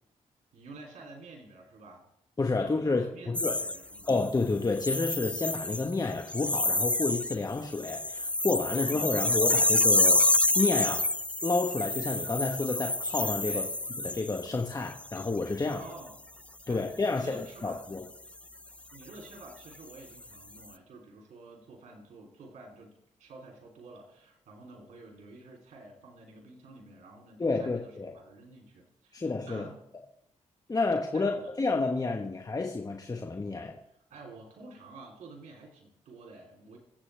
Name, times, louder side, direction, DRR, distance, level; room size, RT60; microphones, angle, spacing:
voice 1, 0.5-2.1 2.6-4.2 8.8-9.5 13.5-13.7 15.6-16.2 16.7-17.8 18.9-29.8 31.1-31.5 32.2-32.3 33.9-36.8, right 2 dB, 80° right, 0 dB, 3.2 m, -49 dB
voice 2, 2.4-3.6 4.1-10.3 10.5-11.1 11.4-13.6 14.0-15.8 16.7-18.0 27.4-28.1 29.1-29.6 30.7-31.3 31.6-33.8, left 3 dB, 30° left, 2 dB, 1.3 m, -30 dB
sound 1, 3.3-4.3 4.8-5.9 6.3-7.3 7.7-14.5 15.0-15.3, left 2 dB, 10° left, 0.4 m, -28 dB
23.5 x 8.2 x 3.4 m, 0.78 s
cardioid pair, 65°, 12 cm